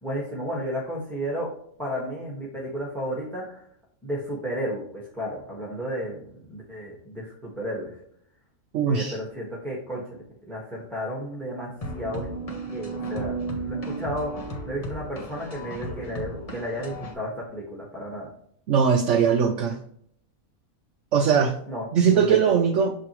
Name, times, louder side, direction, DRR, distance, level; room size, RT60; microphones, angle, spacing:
voice 1, 0.0-1.5 1.8-3.6 4.0-7.9 8.9-12.3 12.7-13.4 13.6-14.3 14.7-18.3 21.7-21.8 22.1-22.4, equal, ahead, -4 dB, 1.4 m, -33 dB
voice 2, 8.7-9.2 18.7-19.8 21.1-21.5 21.9-22.9, right 7 dB, 65° right, 4 dB, 0.9 m, -20 dB
sound 1, 11.8-17.1, right 2 dB, 30° left, 1.0 m, -34 dB
6.6 x 4.9 x 3.1 m, 0.67 s
omnidirectional pair, 1.5 m